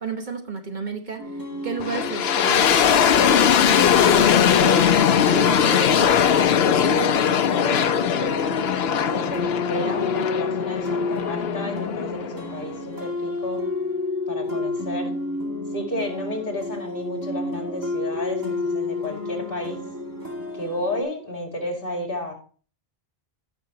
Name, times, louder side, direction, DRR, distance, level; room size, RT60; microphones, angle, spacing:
voice 1, 0.0-3.0, right 5 dB, 50° right, 4 dB, 1.2 m, -32 dB
sound 1, 1.2-21.0, left 2 dB, 20° right, 2.1 m, -30 dB
sound 2, 1.8-12.7, left 8 dB, 75° left, 0.9 m, -20 dB
voice 2, 4.5-8.4 9.0-13.6 14.3-15.1 15.7-19.8 20.5-22.3, left 1 dB, 60° left, 2 dB, 2.6 m, -32 dB
15.0 x 6.0 x 2.9 m, 0.40 s
omnidirectional pair, 1.1 m